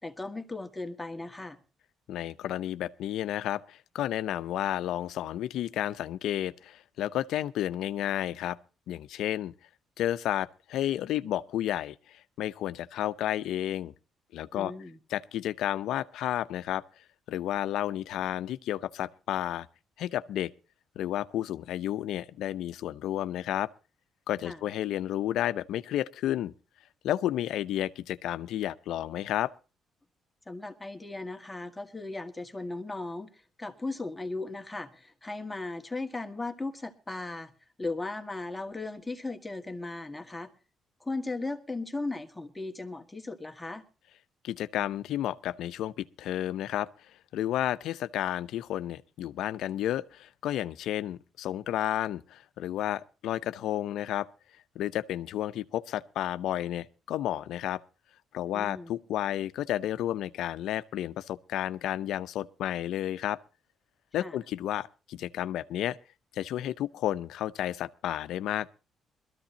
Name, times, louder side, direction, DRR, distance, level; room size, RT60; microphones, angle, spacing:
voice 1, 0.0-1.6 14.5-15.0 24.4-24.6 30.5-33.3 33.6-37.5 37.8-40.5 41.0-43.8 58.5-58.9 64.2-64.4, left 2 dB, 10° left, 1.8 m, -37 dB
voice 2, 2.1-8.6 8.9-9.5 10.0-13.9 14.3-14.7 15.1-16.8 17.3-19.7 20.0-20.5 21.0-23.7 24.3-26.5 27.0-29.5 44.4-46.9 47.3-54.3 54.8-57.8 58.3-63.4 64.1-66.0 66.3-68.7, left 12 dB, 80° left, 0.7 m, -31 dB
21.5 x 14.0 x 2.8 m
cardioid pair, 90°, 0 cm